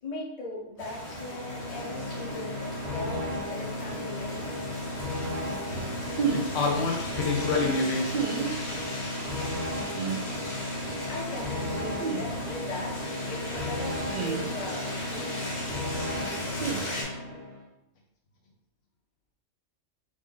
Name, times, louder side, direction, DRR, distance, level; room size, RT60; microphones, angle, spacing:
voice 1, 0.0-4.7 11.0-15.7, left 2 dB, 40° left, -2 dB, 0.6 m, -39 dB
sound 1, 0.8-17.0, left 1 dB, 60° left, 1.3 m, -38 dB
sound 2, 0.8-17.6, left 1 dB, 40° right, 0.8 m, -35 dB
sound 3, 6.2-6.5 8.1-8.5 10.0-10.2 12.0-12.2 14.1-14.5 16.6-16.8, right 6 dB, 65° right, 0.4 m, -29 dB
voice 2, 6.3-8.1, left 4 dB, 75° left, 0 dB, 1.1 m, -27 dB
3.0 x 2.7 x 3.7 m, 0.83 s
omnidirectional pair, 1.3 m